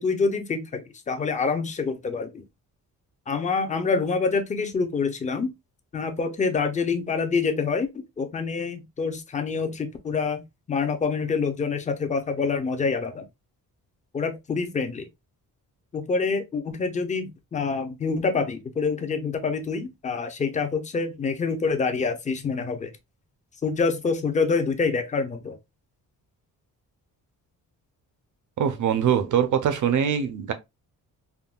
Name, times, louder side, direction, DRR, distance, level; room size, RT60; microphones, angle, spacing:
voice 1, 0.0-2.4 3.3-5.5 5.9-13.2 14.1-15.1 15.9-22.9 23.6-25.6, left 4 dB, 20° left, 0.4 m, -26 dB
voice 2, 28.6-30.5, right 8 dB, 55° right, 0.6 m, -23 dB
3.5 x 2.2 x 2.2 m
wide cardioid pair, 145°, 36 cm